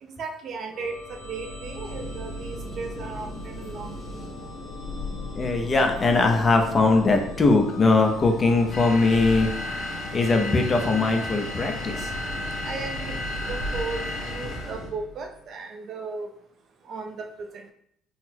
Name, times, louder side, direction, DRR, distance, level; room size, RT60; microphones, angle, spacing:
voice 1, 0.0-4.0 12.6-13.2 13.5-16.3 16.9-17.7, right 4 dB, 40° right, 4 dB, 0.4 m, -36 dB
sound 1, 0.7-15.4, left 2 dB, 60° left, 1.1 m, -38 dB
sound 2, 1.9-14.9, left 2 dB, 5° left, 0.9 m, -43 dB
voice 2, 5.3-9.5 10.1-12.1, left 3 dB, 20° left, 4 dB, 0.4 m, -21 dB
sound 3, 8.7-14.9, left 1 dB, 35° left, 1.1 m, -34 dB
3.9 x 2.0 x 4.2 m, 0.70 s
cardioid pair, 170°, 0 cm